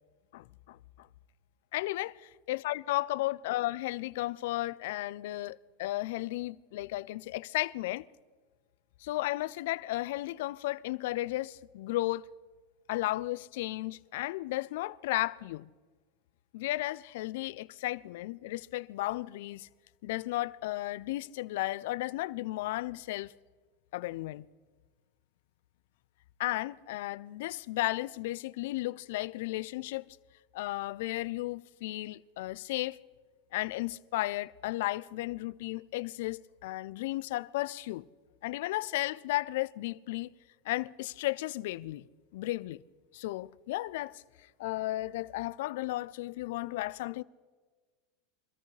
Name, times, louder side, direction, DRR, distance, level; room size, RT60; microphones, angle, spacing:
voice 1, 0.3-1.1 1.7-8.0 9.0-12.2 12.9-15.7 16.5-19.7 20.0-23.3 23.9-24.5 26.4-30.1 30.5-33.0 33.5-38.1 38.4-40.3 40.7-42.0 42.3-42.8 43.1-44.2 44.6-47.2, left 17 dB, 70° left, 0.4 m, -34 dB
24.5 x 14.0 x 3.3 m
hypercardioid pair, 110°, 0 cm